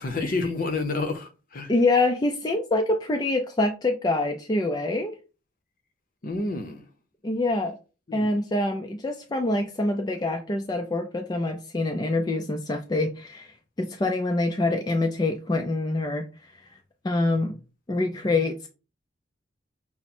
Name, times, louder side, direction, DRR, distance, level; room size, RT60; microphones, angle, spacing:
voice 1, 0.0-1.7 6.2-6.8 8.1-8.4, left 3 dB, 45° left, 0.7 m, -29 dB
voice 2, 1.7-5.1 7.2-7.8 8.1-16.2 17.0-17.5 17.9-18.7, left 2 dB, 20° left, 0.4 m, -25 dB
5.8 x 2.1 x 4.2 m
head